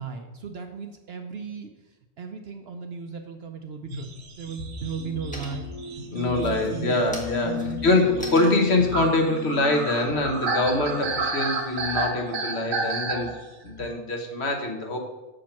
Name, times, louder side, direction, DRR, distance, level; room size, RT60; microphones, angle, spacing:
voice 1, 0.0-4.1 4.4-5.7 6.1-7.1 7.4-8.2, right 5 dB, 60° right, 6 dB, 0.8 m, -36 dB
sound 1, 3.7-4.2 4.7-5.1 5.3-5.9 6.3-10.7, equal, 5° left, 1.4 m, -43 dB
sound 2, 3.9-13.9, right 3 dB, 75° right, 1.4 m, -31 dB
sound 3, 5.0-11.1, left 7 dB, 80° left, 1.4 m, -38 dB
voice 2, 6.1-13.3 13.6-15.0, left 2 dB, 55° left, 3 dB, 1.3 m, -24 dB
7.3 x 5.2 x 5.8 m, 1.1 s
omnidirectional pair, 1.4 m